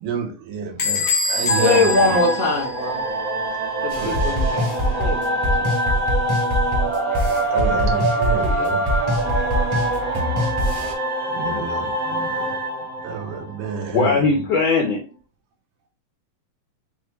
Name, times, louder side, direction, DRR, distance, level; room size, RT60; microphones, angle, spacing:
voice 1, 0.0-1.8 4.0-4.3 7.5-8.8 11.3-12.5 13.0-14.1, right 6 dB, 80° right, 2.4 m, -29 dB
Bell / Squeak, 0.8-3.3, left 3 dB, 65° left, 1.1 m, -25 dB
sound 1, 1.5-14.1, right 1 dB, 55° right, 1.0 m, -24 dB
voice 2, 1.6-3.0 3.8-4.7 5.0-5.7 8.6-8.7, left 3 dB, 5° right, 0.5 m, -22 dB
sound 2, 3.9-10.9, equal, 25° right, 0.9 m, -24 dB
voice 3, 13.9-15.0, left 4 dB, 90° left, 1.4 m, -19 dB
6.2 x 2.1 x 3.2 m
omnidirectional pair, 3.8 m